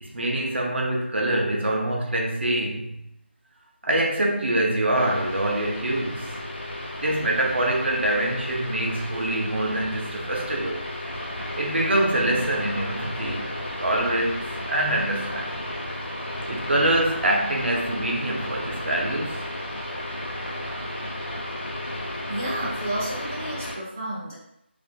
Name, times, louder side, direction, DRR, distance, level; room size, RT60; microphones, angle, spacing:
voice 1, 0.0-3.0 3.8-6.4 7.0-10.9 11.6-15.7 16.5-19.5, right 1 dB, 70° right, 0 dB, 0.6 m, -25 dB
sound 1, 4.9-23.7, left 1 dB, 75° left, 0.8 m, -33 dB
voice 2, 22.3-24.3, right 1 dB, 15° right, -7 dB, 0.4 m, -31 dB
2.5 x 2.1 x 2.7 m, 0.78 s
figure-of-eight pair, 175°, 6 cm